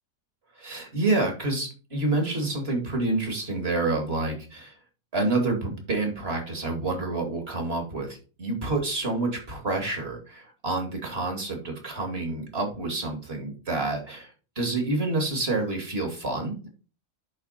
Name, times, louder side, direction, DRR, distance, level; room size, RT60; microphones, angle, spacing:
voice 1, 0.6-4.7 5.1-16.7, right 2 dB, 45° right, 3 dB, 2.4 m, -28 dB
10.5 x 4.2 x 4.2 m, 0.35 s
omnidirectional pair, 1.5 m